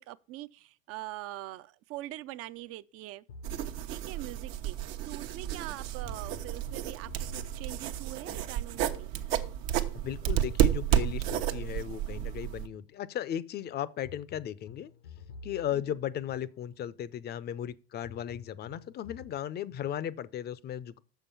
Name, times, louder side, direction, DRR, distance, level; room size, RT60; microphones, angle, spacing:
voice 1, 0.0-3.2 3.9-4.8 5.1-9.1 15.7-15.8, right 16 dB, 50° right, 0.5 m, -43 dB
sound 1, 3.3-5.2 6.0-9.1 10.0-13.1 14.0-17.1 18.0-19.4, left 4 dB, 85° left, 1.0 m, -51 dB
sound 2, 3.4-12.7, right 11 dB, 70° right, 0.9 m, -31 dB
voice 2, 9.9-14.9 15.4-21.0, left 10 dB, 35° left, 0.5 m, -36 dB
6.7 x 5.8 x 6.8 m
hypercardioid pair, 90°, 30 cm